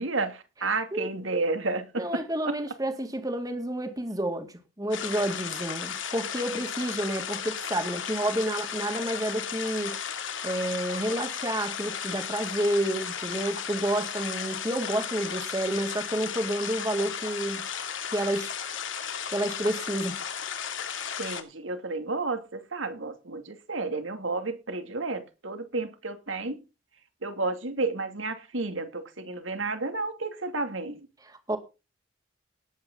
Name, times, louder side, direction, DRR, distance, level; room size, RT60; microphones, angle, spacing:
voice 1, 0.0-2.6 21.2-26.6 27.2-31.0, right 3 dB, 85° right, 2.6 m, -31 dB
voice 2, 2.0-10.0 10.4-17.6 18.1-18.5 19.3-20.2 31.3-31.6, right 1 dB, 20° right, 2.1 m, -30 dB
sound 1, 4.9-21.4, left 8 dB, 80° left, 2.5 m, -35 dB
19.0 x 8.8 x 4.0 m
head